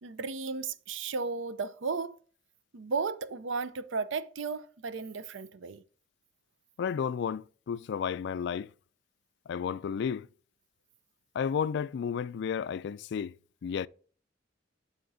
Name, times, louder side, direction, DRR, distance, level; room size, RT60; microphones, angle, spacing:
voice 1, 0.0-2.1 2.7-5.8, right 4 dB, 80° right, 0.5 m, -34 dB
voice 2, 6.8-8.7 9.5-10.3 11.4-13.3 13.6-13.9, left 7 dB, 65° left, 0.3 m, -32 dB
12.5 x 4.3 x 2.6 m
head